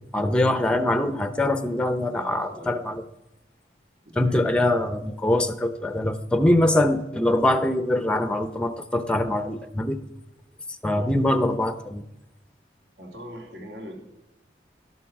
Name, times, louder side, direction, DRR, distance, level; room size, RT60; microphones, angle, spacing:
voice 1, 0.1-3.0 4.2-10.0 10.8-12.0, left 1 dB, 5° left, 9 dB, 0.7 m, -23 dB
voice 2, 2.0-2.8 4.0-4.6 10.9-11.1 13.0-13.9, equal, 70° right, 0 dB, 3.2 m, -41 dB
12.0 x 11.5 x 7.2 m, 0.92 s
head